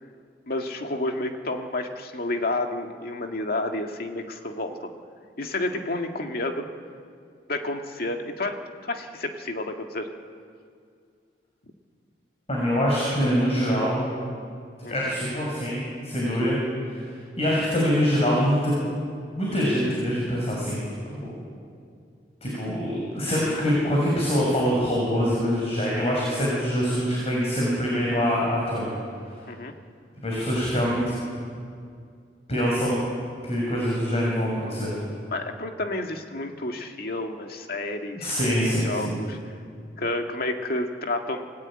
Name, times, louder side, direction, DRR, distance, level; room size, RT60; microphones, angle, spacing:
voice 1, 0.5-4.9 5.4-6.7 7.5-10.1 14.8-15.0 29.5-29.7 35.3-39.5 40.0-41.5, left 2 dB, 60° left, 4 dB, 2.0 m, -30 dB
voice 2, 12.5-14.1 14.9-15.8 16.0-16.6 16.9-18.7 19.3-20.8 21.1-21.3 22.4-28.9 30.2-31.0 32.5-33.0 33.4-35.0 38.2-39.1, equal, 35° left, -4 dB, 6.5 m, -24 dB
28.5 x 17.5 x 9.0 m, 2.3 s
head